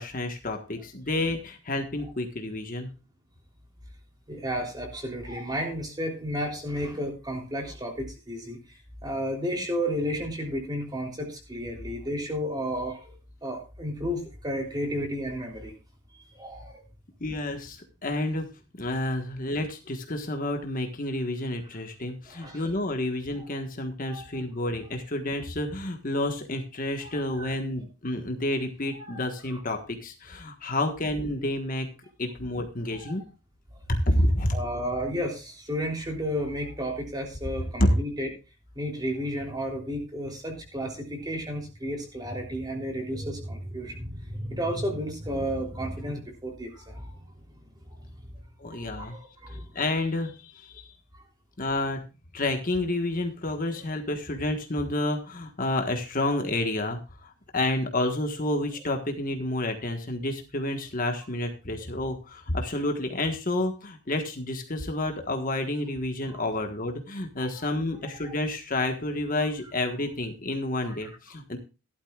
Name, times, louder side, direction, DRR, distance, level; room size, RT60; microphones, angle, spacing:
voice 1, 0.0-2.9 17.2-18.5 18.7-31.9 32.2-33.2 33.9-34.6 37.8-38.0 48.6-49.2 49.5-50.9 51.6-52.0 52.3-71.6, left 1 dB, 40° left, 4 dB, 1.4 m, -29 dB
voice 2, 4.3-13.2 13.4-15.7 16.3-16.8 22.3-22.7 23.4-23.5 24.1-24.3 27.0-27.5 28.9-29.2 29.5-29.6 32.9-33.1 34.5-38.3 38.7-47.6 48.0-48.1 48.7-49.7 66.3-66.4 67.4-67.7 68.0-68.3 70.8-70.9, equal, 20° right, 1 dB, 3.3 m, -33 dB
16.0 x 12.0 x 2.4 m, 0.30 s
head